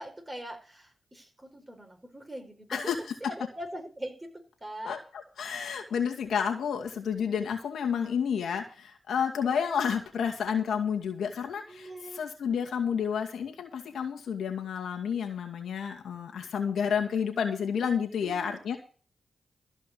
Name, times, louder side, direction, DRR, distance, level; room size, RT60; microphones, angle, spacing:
voice 1, 0.0-2.9 3.2-4.3 4.6-5.0 11.7-12.2 18.2-18.8, right 1 dB, 20° right, 3 dB, 5.0 m, -42 dB
voice 2, 5.4-18.8, left 7 dB, 80° left, 3 dB, 2.3 m, -30 dB
14.0 x 5.3 x 8.4 m, 0.38 s
cardioid pair, 55°, 0 cm